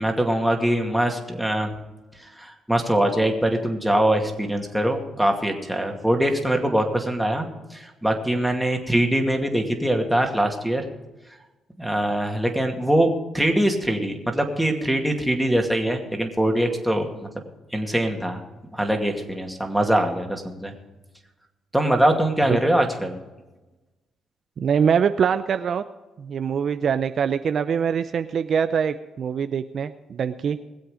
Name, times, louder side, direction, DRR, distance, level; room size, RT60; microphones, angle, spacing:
voice 1, 0.0-1.7 2.2-10.8 11.8-17.3 17.7-18.4 18.7-20.7 21.7-23.2, right 1 dB, 5° right, 2 dB, 2.4 m, -23 dB
voice 2, 24.6-25.8 26.2-30.6, right 7 dB, 55° right, 10 dB, 0.6 m, -23 dB
21.0 x 7.9 x 5.0 m, 1.1 s
cardioid pair, 90°, 0 cm